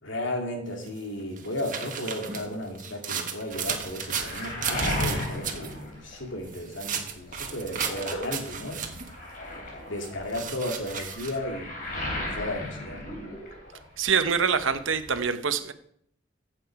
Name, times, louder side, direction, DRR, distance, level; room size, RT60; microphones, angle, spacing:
voice 1, 0.0-9.0 9.9-13.0, left 1 dB, 80° left, 2 dB, 2.6 m, -34 dB
sound 1, 0.9-5.7 6.5-9.2 10.0-11.4, right 7 dB, 45° right, 1.4 m, -34 dB
Waves surf, 3.5-6.7 7.0-14.0 14.2-15.2, left 1 dB, 45° left, 3.7 m, -36 dB
voice 2, 14.0-15.7, right 6 dB, 90° right, 11 dB, 0.9 m, -25 dB
15.0 x 7.7 x 4.7 m, 0.70 s
head